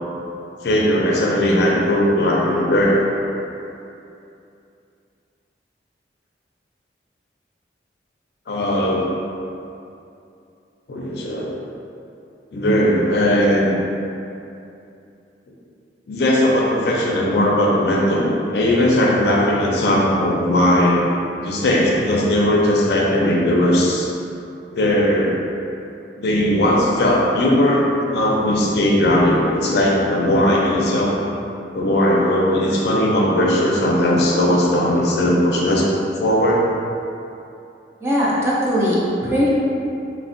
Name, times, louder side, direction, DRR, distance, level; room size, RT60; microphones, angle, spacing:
voice 1, 0.6-3.1 8.5-9.1 10.9-11.5 12.5-13.7 16.1-21.0 21.4-24.1 24.7-25.4 26.2-31.1 31.7-35.9 36.2-36.6, left 1 dB, 65° left, -3 dB, 0.4 m, -18 dB
voice 2, 38.0-39.5, equal, 15° right, -7 dB, 0.4 m, -19 dB
3.3 x 2.1 x 2.5 m, 2.7 s
head